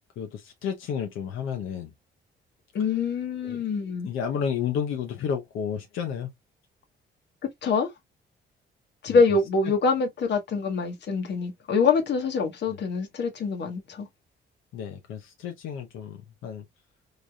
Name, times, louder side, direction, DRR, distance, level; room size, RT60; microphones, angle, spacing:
voice 1, 0.2-1.9 3.4-3.6 4.0-6.3 9.1-9.2 12.7-12.8 14.7-16.7, left 7 dB, 90° left, 0.8 m, -31 dB
voice 2, 2.7-4.1 7.6-7.9 9.0-14.1, left 4 dB, 60° left, 1.2 m, -25 dB
4.0 x 3.3 x 2.3 m
cardioid pair, 90°, 20 cm